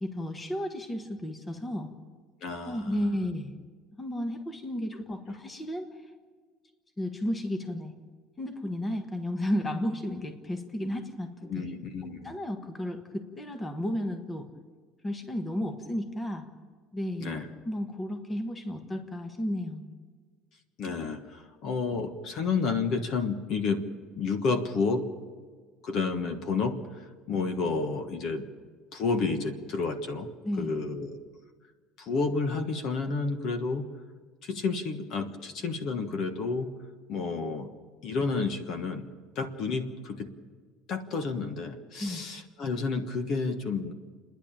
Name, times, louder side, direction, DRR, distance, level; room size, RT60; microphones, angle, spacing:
voice 1, 0.0-1.9 2.6-3.6 4.0-5.9 7.0-7.9 8.4-11.7 12.2-14.5 15.0-16.4 16.9-19.9 30.4-30.8 42.0-42.2, left 1 dB, 15° left, 6 dB, 1.4 m, -33 dB
voice 2, 2.4-2.9 11.4-12.3 17.2-17.5 20.8-23.8 24.2-25.0 25.8-28.4 28.9-30.3 30.6-31.2 32.0-33.9 34.4-36.7 37.1-37.7 38.0-39.1 39.3-40.3 40.9-43.9, left 4 dB, 45° left, 8 dB, 1.4 m, -30 dB
30.0 x 10.5 x 8.8 m, 1.5 s
cardioid pair, 155°, 0 cm